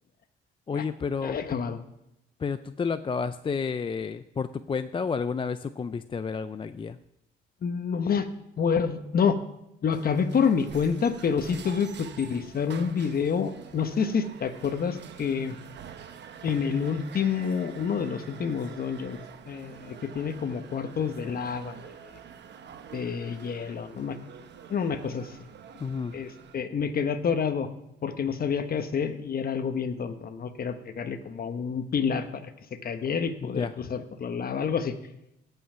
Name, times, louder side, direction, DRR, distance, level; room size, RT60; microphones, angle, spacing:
voice 1, 0.7-1.4 2.4-7.0 25.8-26.1 33.4-33.7, left 5 dB, 25° left, 11 dB, 0.4 m, -31 dB
voice 2, 1.2-1.8 7.6-8.3 8.6-9.4 9.8-15.6 16.4-19.2 19.5-21.9 22.9-24.2 24.7-25.3 26.1-27.7 28.0-32.5 32.8-35.0, left 6 dB, 50° left, 9 dB, 1.1 m, -28 dB
sound 1, 9.9-26.6, right 7 dB, 60° right, 1.1 m, -47 dB
17.0 x 5.7 x 5.6 m, 0.87 s
cardioid pair, 90°, 20 cm